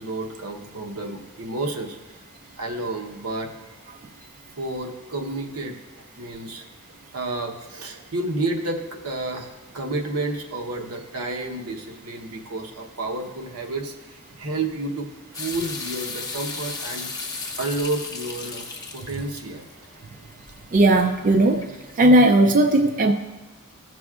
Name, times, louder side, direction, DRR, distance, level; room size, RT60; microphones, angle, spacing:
voice 1, 0.0-2.2 2.6-3.5 4.6-5.8 6.2-6.7 7.1-15.1 15.4-17.3 17.6-19.6, right 2 dB, 80° right, 2 dB, 1.0 m, -30 dB
sound 1, 15.3-22.2, left 4 dB, 15° left, 0.8 m, -36 dB
voice 2, 20.7-21.6 22.0-23.1, right 1 dB, 35° right, 5 dB, 0.4 m, -16 dB
15.0 x 6.1 x 2.4 m, 1.2 s
head